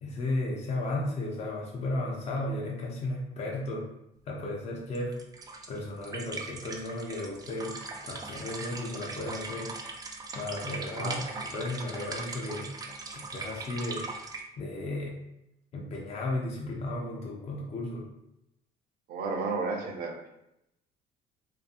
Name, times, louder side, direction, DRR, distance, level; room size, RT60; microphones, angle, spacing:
voice 1, 0.0-3.9 4.3-5.2 5.7-9.8 10.3-12.7 13.1-14.1 14.6-15.2 15.7-18.1, left 2 dB, 40° left, -2 dB, 0.5 m, -34 dB
sound 1, 4.9-14.4, right 3 dB, 20° right, 0.3 m, -40 dB
voice 2, 10.9-11.3 19.1-20.2, right 4 dB, 65° right, 2 dB, 0.6 m, -32 dB
2.6 x 2.5 x 2.4 m, 0.85 s
cardioid pair, 110°, 17 cm